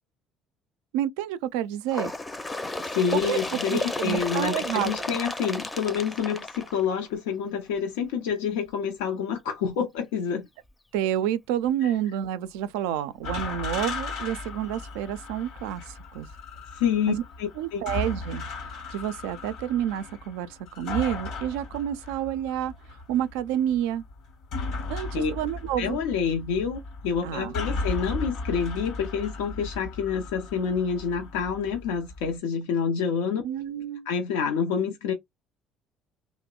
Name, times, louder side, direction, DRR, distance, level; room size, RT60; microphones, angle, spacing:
voice 1, 0.9-2.1 3.1-4.9 10.9-16.3 17.1-17.2 17.6-18.4 18.9-20.5 20.8-24.0 24.9-26.0 27.2-27.8 33.4-34.1, right 11 dB, 85° right, 0.3 m, -29 dB
Bird, 1.9-7.3 8.2-8.3 8.7-8.8 9.7-9.8 10.7-10.8 11.7-11.8, left 2 dB, 20° left, 0.5 m, -33 dB
voice 2, 2.8-10.4 11.8-11.9 16.7-17.8 25.1-25.3 25.8-33.4 34.1-35.1, left 6 dB, 85° left, 0.5 m, -28 dB
sound 1, 13.2-32.3, left 3 dB, 70° left, 1.0 m, -36 dB
2.8 x 2.0 x 2.3 m
supercardioid pair, 75°, 0 cm